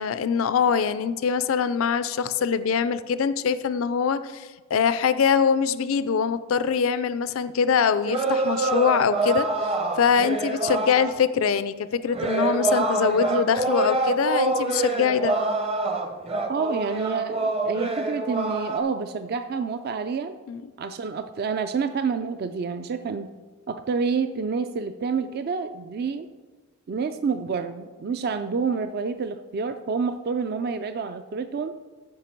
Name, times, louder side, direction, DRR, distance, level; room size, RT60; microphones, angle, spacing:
voice 1, 0.0-9.5 10.0-15.3 20.5-20.6, left 6 dB, 70° left, 14 dB, 0.4 m, -23 dB
sound 1, 8.0-11.1 12.0-18.8, right 3 dB, 25° right, 0.7 m, -26 dB
voice 2, 16.5-20.3 20.8-23.3 23.7-26.3 26.9-31.7, right 5 dB, 45° right, 9 dB, 0.3 m, -28 dB
14.5 x 5.1 x 4.5 m, 1.4 s
head